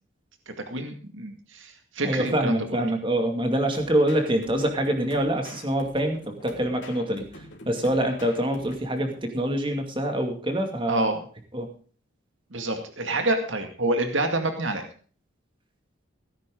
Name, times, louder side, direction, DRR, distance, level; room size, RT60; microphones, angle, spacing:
voice 1, 0.5-2.6 10.9-11.2 12.5-14.9, right 2 dB, 70° right, 5 dB, 2.2 m, -27 dB
voice 2, 2.0-7.2 7.7-11.1 11.5-11.7, right 1 dB, 25° right, 4 dB, 2.4 m, -25 dB
sound 1, 3.7-9.2, left 1 dB, 65° left, 3.3 m, -46 dB
18.0 x 10.0 x 3.9 m, 0.42 s
head